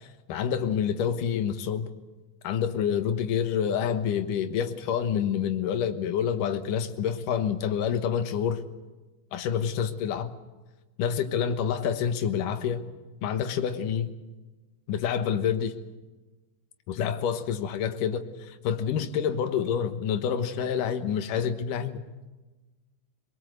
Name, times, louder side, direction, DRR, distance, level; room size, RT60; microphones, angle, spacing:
voice 1, 0.3-1.9 2.4-8.6 9.3-10.3 11.0-12.8 13.2-14.1 14.9-15.7 16.9-22.0, left 8 dB, 65° left, 2.2 m, -27 dB
22.5 x 22.0 x 8.0 m
omnidirectional pair, 5.4 m